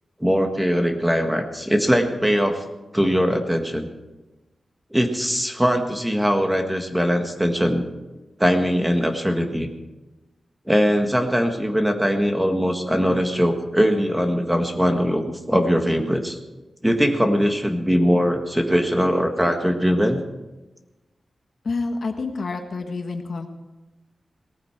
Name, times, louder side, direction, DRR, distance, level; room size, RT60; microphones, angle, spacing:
voice 1, 0.2-2.6 2.9-3.9 4.9-7.8 8.4-9.7 10.7-16.4 16.8-20.2, equal, 5° right, 4 dB, 1.6 m, -21 dB
voice 2, 21.6-23.5, left 3 dB, 65° left, 5 dB, 1.6 m, -28 dB
19.0 x 14.5 x 4.5 m, 1.1 s
wide cardioid pair, 125°, 0 cm